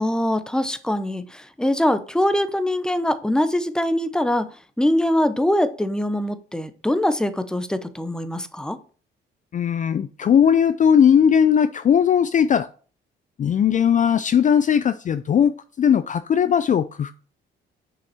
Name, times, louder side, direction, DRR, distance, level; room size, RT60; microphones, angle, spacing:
voice 1, 0.0-4.5 4.8-8.8, left 1 dB, 5° left, 0.8 m, -23 dB
voice 2, 9.5-12.7 13.4-17.1, left 8 dB, 40° left, 0.4 m, -18 dB
7.0 x 5.5 x 4.2 m
cardioid pair, 90°, 20 cm